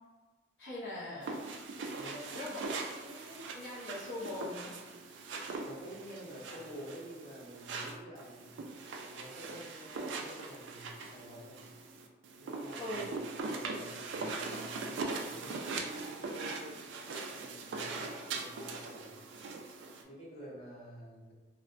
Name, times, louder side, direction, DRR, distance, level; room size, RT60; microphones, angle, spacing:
voice 1, 0.6-1.5 2.3-4.8 12.8-13.0, left 1 dB, 60° left, -9 dB, 0.6 m, -42 dB
sound 1, 1.2-20.0, right 3 dB, 75° right, 0.3 m, -41 dB
voice 2, 1.9-2.3 5.6-8.5 8.9-11.6 12.4-13.0 13.4-16.8 17.3-19.2 20.0-21.3, equal, 30° left, -10 dB, 1.3 m, -49 dB
3.2 x 2.1 x 2.5 m, 1.3 s
head